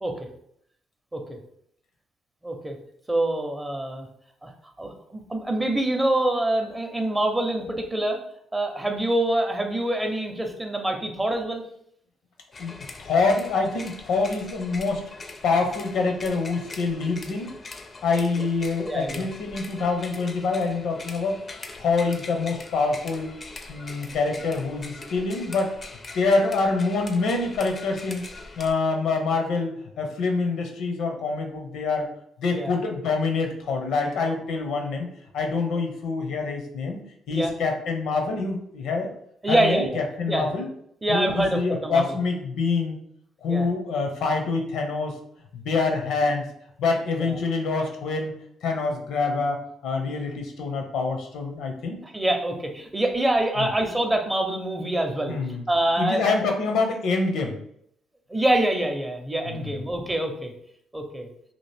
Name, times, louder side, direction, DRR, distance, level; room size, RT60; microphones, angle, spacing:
voice 1, 2.4-2.8 3.1-4.1 4.4-4.5 4.8-8.2 8.5-11.6 18.3-18.4 18.9-19.2 32.5-32.7 37.3-37.5 39.4-40.0 40.3-40.5 41.0-42.2 43.5-43.7 47.2-47.4 52.0-55.4 55.7-56.3 58.3-60.5 60.9-61.3, right 1 dB, 15° right, 4 dB, 0.5 m, -25 dB
sound 1, 12.5-28.7, left 3 dB, 35° left, 0.4 m, -42 dB
voice 2, 13.0-15.0 15.4-17.5 18.0-21.4 21.7-23.3 23.7-25.8 26.1-28.3 28.6-32.1 32.4-35.1 35.3-37.0 37.3-39.1 39.5-40.7 41.1-43.0 43.4-45.2 45.5-46.5 46.8-48.3 48.6-52.0 53.6-53.7 55.3-55.6 56.0-57.6 59.5-59.8, left 4 dB, 80° left, 3 dB, 0.6 m, -26 dB
2.8 x 2.4 x 3.2 m, 0.69 s
cardioid pair, 90°, 0 cm